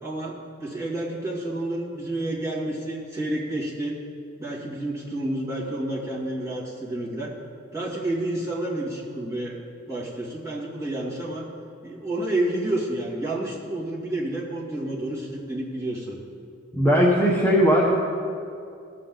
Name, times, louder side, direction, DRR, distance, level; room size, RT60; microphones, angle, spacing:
voice 1, 0.0-4.0 4.4-7.4 7.7-9.6 9.9-11.5 11.8-16.2, right 1 dB, 15° right, -7 dB, 2.3 m, -30 dB
voice 2, 16.7-17.9, equal, 10° left, -4 dB, 0.9 m, -18 dB
18.0 x 7.6 x 3.9 m, 2.5 s
head